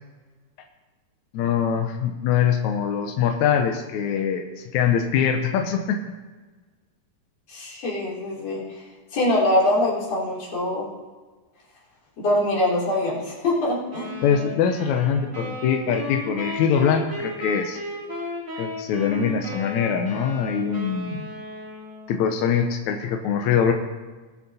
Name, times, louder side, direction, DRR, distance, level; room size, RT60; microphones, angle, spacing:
voice 1, 1.3-6.0 14.2-17.8 18.6-21.3 22.1-23.7, left 7 dB, 75° left, 4 dB, 1.8 m, -23 dB
voice 2, 7.5-8.6 9.1-10.9 12.2-14.1, left 1 dB, 45° left, -6 dB, 4.5 m, -23 dB
sound 1, 13.9-22.3, left 2 dB, 10° right, 1.4 m, -35 dB
20.5 x 7.1 x 4.2 m, 1.3 s
omnidirectional pair, 4.1 m